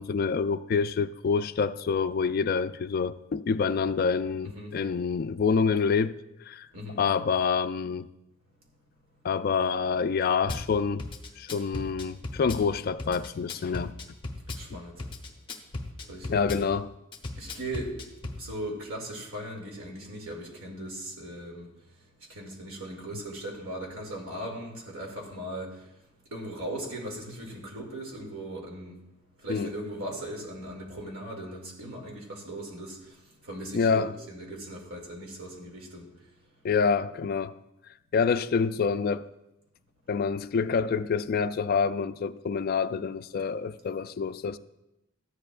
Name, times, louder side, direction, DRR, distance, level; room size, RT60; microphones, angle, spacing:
voice 1, 0.0-6.2 6.5-6.7 7.0-8.1 9.2-11.0 11.4-14.0 14.7-14.8 16.3-16.9 29.5-29.7 33.7-34.1 36.6-37.5 38.1-39.2 40.1-44.6, left 5 dB, 45° left, 0.3 m, -27 dB
voice 2, 4.4-4.8 6.7-7.0 14.5-15.0 16.1-16.6 17.4-18.0 18.4-21.7 22.3-25.9 26.3-28.9 29.4-33.0 33.4-36.1, right 1 dB, 90° right, 2.5 m, -38 dB
Drum kit / Bass drum, 10.5-10.7 11.0-12.6 13.0-14.6 15.0-16.6 17.1-18.4, left 2 dB, 25° left, 0.9 m, -36 dB
14.0 x 10.0 x 2.5 m
head